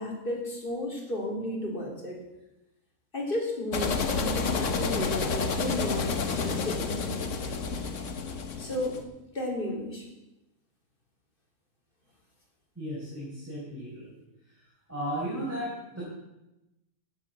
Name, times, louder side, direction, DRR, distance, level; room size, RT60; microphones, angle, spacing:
voice 1, 0.0-2.2 3.1-7.3 8.6-9.0 9.3-10.0, left 1 dB, 40° left, -1 dB, 3.4 m, -33 dB
sound 1, 3.7-9.0, left 4 dB, 60° left, 1.5 m, -30 dB
voice 2, 12.8-14.0 14.9-16.0, equal, 10° right, -8 dB, 4.6 m, -35 dB
15.5 x 7.1 x 6.9 m, 0.94 s
omnidirectional pair, 1.5 m